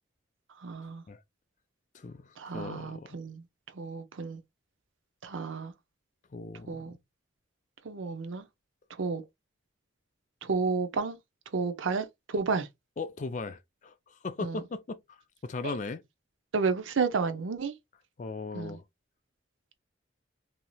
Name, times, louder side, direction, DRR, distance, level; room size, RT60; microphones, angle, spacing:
voice 1, 0.6-1.0 2.4-3.4 3.7-4.4 5.2-5.7 6.7-6.9 7.8-8.5 9.0-9.2 10.4-11.2 11.5-12.7 14.4-14.6 15.6-15.8 16.5-17.7 18.5-18.8, right 4 dB, 80° right, 0.6 m, -31 dB
voice 2, 1.9-3.2 6.3-7.0 13.0-15.2 15.4-16.0 18.2-18.8, left 3 dB, 40° left, 0.4 m, -38 dB
3.0 x 2.7 x 2.2 m
head